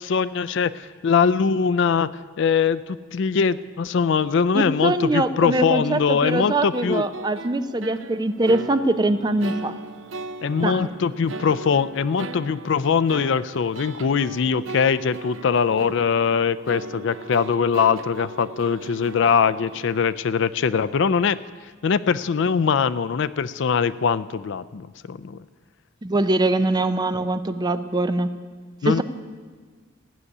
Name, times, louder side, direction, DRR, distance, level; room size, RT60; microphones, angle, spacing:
voice 1, 0.0-2.1 2.4-7.0 10.4-21.4 21.8-25.4 28.8-29.0, left 6 dB, 60° left, 15 dB, 0.4 m, -22 dB
voice 2, 4.5-9.7 10.6-10.9 26.0-28.3 28.8-29.0, right 2 dB, 20° right, 10 dB, 0.5 m, -23 dB
sound 1, 6.2-20.1, right 3 dB, 65° right, 0.6 m, -38 dB
15.5 x 6.7 x 9.7 m, 1.5 s
head